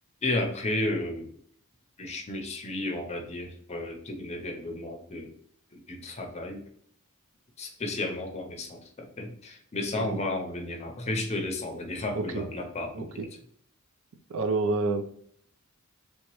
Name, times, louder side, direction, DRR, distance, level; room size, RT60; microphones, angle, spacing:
voice 1, 0.2-1.3 2.0-5.4 5.7-6.6 7.6-13.3, left 2 dB, 30° left, 3 dB, 0.6 m, -33 dB
voice 2, 12.9-13.3 14.3-15.0, right 3 dB, 65° right, 8 dB, 0.4 m, -29 dB
3.3 x 2.9 x 3.0 m, 0.62 s
head